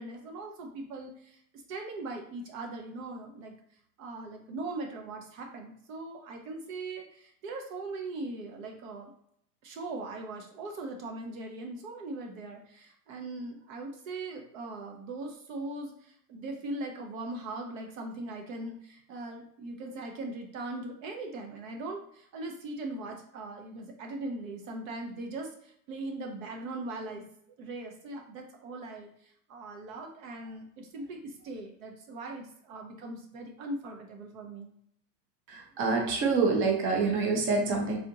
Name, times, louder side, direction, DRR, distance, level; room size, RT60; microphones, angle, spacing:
voice 1, 0.0-1.4 1.7-3.5 4.0-9.1 9.6-27.2 27.6-34.7, right 2 dB, 55° right, 2 dB, 0.8 m, -40 dB
voice 2, 35.5-38.0, right 4 dB, 25° right, 0 dB, 0.8 m, -26 dB
3.5 x 2.5 x 2.7 m, 0.69 s
hypercardioid pair, 125°, 48 cm